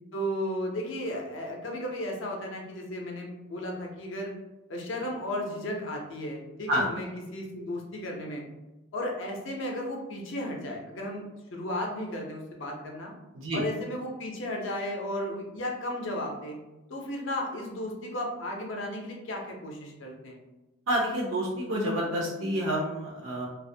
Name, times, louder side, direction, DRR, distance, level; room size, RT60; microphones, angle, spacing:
voice 1, 0.1-4.3 4.7-8.4 8.9-11.2 11.5-13.1 13.5-16.6 16.9-20.4, left 1 dB, 60° left, 0 dB, 0.5 m, -34 dB
voice 2, 20.9-23.5, equal, 70° right, -2 dB, 0.5 m, -28 dB
2.3 x 2.0 x 2.6 m, 1.0 s
head